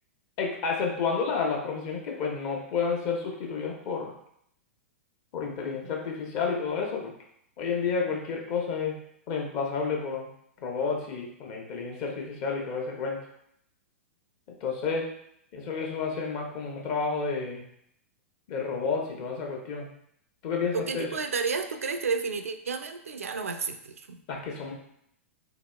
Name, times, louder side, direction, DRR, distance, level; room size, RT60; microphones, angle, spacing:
voice 1, 0.4-4.1 5.3-7.1 7.6-9.0 9.3-10.3 10.6-13.2 14.6-15.1 15.5-17.6 18.5-19.9 20.4-21.1 24.3-24.7, left 5 dB, 45° left, 0 dB, 0.8 m, -30 dB
voice 2, 20.7-24.2, right 5 dB, 80° right, 8 dB, 0.3 m, -31 dB
4.0 x 2.8 x 2.3 m, 0.72 s
figure-of-eight pair, 105°, 8 cm